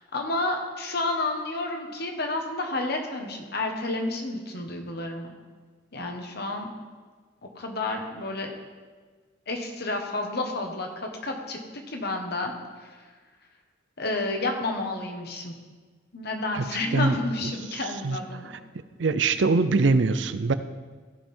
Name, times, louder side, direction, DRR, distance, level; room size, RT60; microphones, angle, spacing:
voice 1, 0.0-5.3 5.9-6.7 7.5-8.5 9.5-11.6 11.9-12.5 12.8-12.9 14.0-15.5 16.1-18.5, left 2 dB, 60° left, 3 dB, 1.4 m, -30 dB
voice 2, 19.0-20.5, right 3 dB, 70° right, 12 dB, 0.5 m, -22 dB
15.5 x 5.7 x 4.4 m, 1.4 s
head